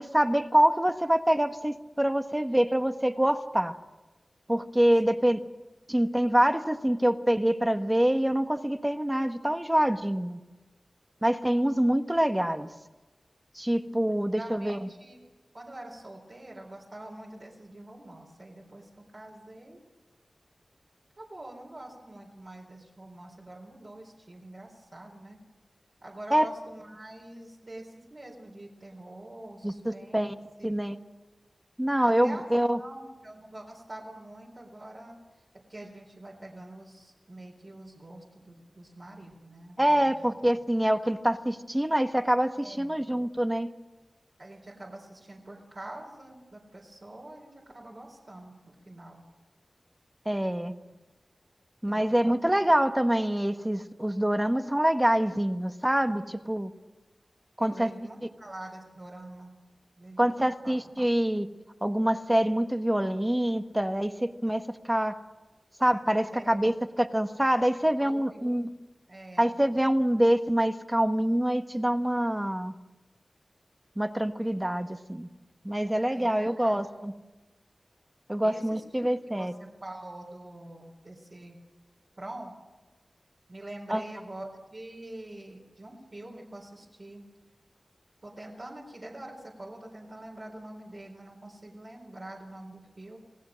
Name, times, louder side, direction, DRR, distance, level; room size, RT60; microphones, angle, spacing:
voice 1, 0.0-3.7 4.5-5.4 5.9-10.4 11.2-12.7 13.5-14.8 26.3-26.5 29.6-30.3 30.6-31.0 31.8-32.8 39.8-43.7 50.2-50.7 51.8-56.7 57.6-57.9 60.2-61.5 61.8-65.2 65.8-68.7 69.4-72.7 74.0-75.3 75.6-77.1 78.3-79.5 83.9-84.0, right 1 dB, 10° right, 8 dB, 1.3 m, -25 dB
voice 2, 14.1-15.2 15.5-19.8 21.2-25.4 26.0-30.8 32.0-32.4 32.7-35.4 35.7-40.6 42.6-43.0 44.4-49.2 50.9-51.0 51.9-52.3 57.6-59.6 60.0-60.8 66.3-66.6 67.7-68.7 69.1-69.5 76.1-76.8 78.4-81.6 82.2-82.5 83.5-87.2 88.2-93.2, right 1 dB, 50° right, -3 dB, 4.2 m, -45 dB
27.5 x 18.5 x 6.4 m, 1.2 s
wide cardioid pair, 90°, 0 cm